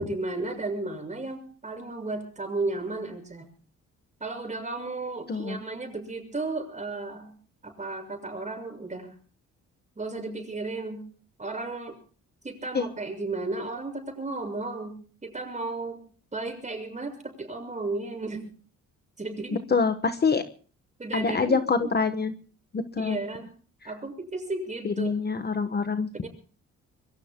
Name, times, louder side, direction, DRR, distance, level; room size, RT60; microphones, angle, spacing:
voice 1, 0.0-3.5 4.2-7.3 7.6-9.1 10.0-11.0 11.4-12.0 12.4-16.0 16.3-18.5 19.2-19.6 21.0-21.6 23.0-23.5 23.8-25.1 26.2-26.3, right 3 dB, 25° right, 5 dB, 6.6 m, -34 dB
voice 2, 5.3-5.6 12.7-12.9 19.7-20.4 21.1-22.3 22.7-23.2 24.8-26.3, left 4 dB, 35° left, 10 dB, 1.1 m, -25 dB
25.5 x 22.5 x 2.2 m, 0.40 s
cardioid pair, 90°, 30 cm